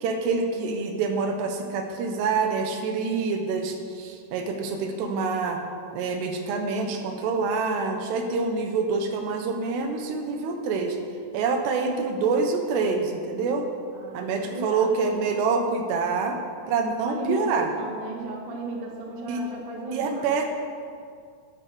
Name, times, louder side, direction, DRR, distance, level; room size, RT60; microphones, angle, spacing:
voice 1, 0.0-5.6 5.9-11.0 11.3-13.7 14.1-16.4 16.7-17.7 19.3-19.4 19.9-20.5, right 4 dB, 80° right, 5 dB, 3.1 m, -26 dB
voice 2, 13.9-15.1 17.0-20.3, right 1 dB, 50° right, 0 dB, 1.8 m, -35 dB
12.5 x 9.7 x 6.2 m, 2.2 s
omnidirectional pair, 4.9 m